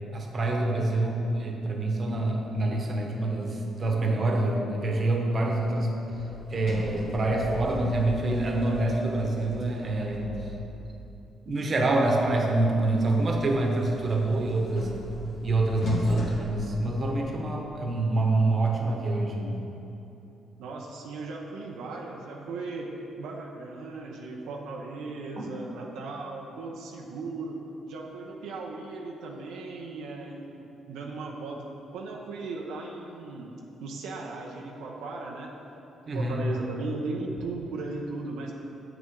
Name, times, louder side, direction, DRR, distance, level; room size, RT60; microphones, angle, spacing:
voice 1, 0.1-5.9 6.5-10.5 11.4-14.9 15.4-19.6 25.4-25.5 36.1-36.6, right 2 dB, 40° right, 1 dB, 1.0 m, -26 dB
Sliding door, 6.1-10.9 12.5-17.5, left 1 dB, 65° left, 1.5 m, -39 dB
voice 2, 20.6-22.9 23.2-31.7 31.9-33.5 33.8-35.5 36.1-38.5, right 3 dB, 90° right, -1 dB, 0.7 m, -37 dB
8.1 x 6.8 x 3.7 m, 2.9 s
cardioid pair, 90°, 0 cm